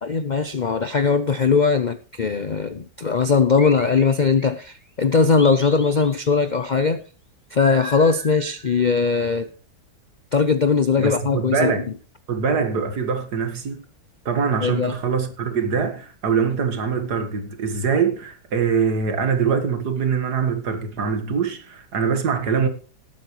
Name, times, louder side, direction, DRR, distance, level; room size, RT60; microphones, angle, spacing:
voice 1, 0.0-7.0 7.5-9.5 10.3-11.7 14.6-14.9, left 5 dB, 60° left, 0.4 m, -20 dB
sound 1, 3.6-4.7 5.4-6.5 7.6-9.0, equal, 10° left, 2.7 m, -36 dB
voice 2, 11.0-11.9 12.3-13.8 14.3-22.7, right 6 dB, 75° right, 2.2 m, -23 dB
19.0 x 8.7 x 3.1 m
omnidirectional pair, 1.8 m